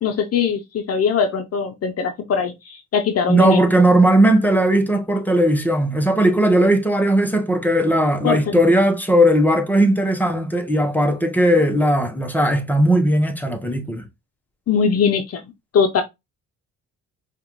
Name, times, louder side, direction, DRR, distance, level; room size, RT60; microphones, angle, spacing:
voice 1, 0.0-3.6 8.2-8.6 14.7-15.4 15.7-16.0, left 6 dB, 55° left, 0.7 m, -21 dB
voice 2, 3.3-14.0, right 1 dB, 5° left, 0.9 m, -17 dB
5.0 x 2.5 x 3.0 m
cardioid pair, 90°, 30 cm